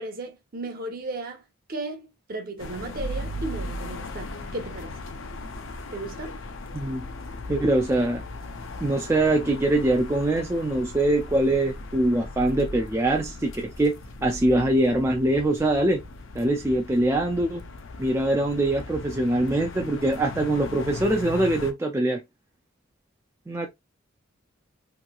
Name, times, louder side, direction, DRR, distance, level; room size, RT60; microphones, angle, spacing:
voice 1, 0.0-1.4 1.7-5.0 5.9-6.4, right 2 dB, 45° right, 0.8 m, -35 dB
sound 1, 2.6-21.7, left 2 dB, 70° left, 0.5 m, -38 dB
voice 2, 6.7-7.0 7.5-8.2 8.8-13.9 14.2-16.0 16.4-17.6 18.0-22.2 23.5-23.7, right 1 dB, 15° right, 0.4 m, -23 dB
3.0 x 2.7 x 2.2 m
head